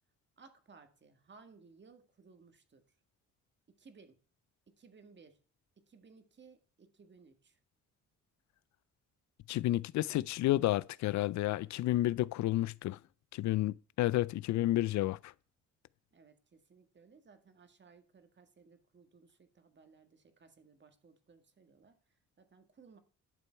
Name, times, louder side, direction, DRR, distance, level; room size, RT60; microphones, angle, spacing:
voice 1, 0.4-2.8 3.7-4.2 4.7-5.4 5.8-7.6 16.1-23.0, right 5 dB, 35° right, 1.8 m, -60 dB
voice 2, 9.5-13.0 13.3-15.3, left 15 dB, 70° left, 0.4 m, -31 dB
11.5 x 6.9 x 4.5 m
cardioid pair, 90°, 30 cm